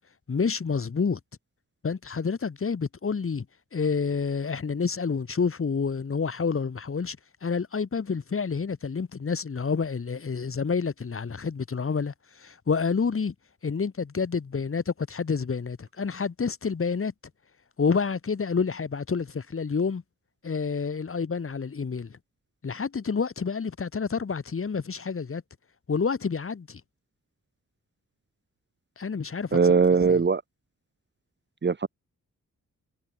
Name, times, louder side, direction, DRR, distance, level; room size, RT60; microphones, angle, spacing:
voice 1, 0.3-1.2 1.8-3.5 3.7-13.3 13.6-17.1 17.8-20.0 20.4-22.2 22.6-25.4 25.9-26.8 29.0-29.6 30.1-30.2, left 5 dB, 45° left, 8.0 m, -28 dB
voice 2, 29.5-30.4 31.6-31.9, right 5 dB, 35° right, 1.8 m, -20 dB
wide cardioid pair, 135°, 30 cm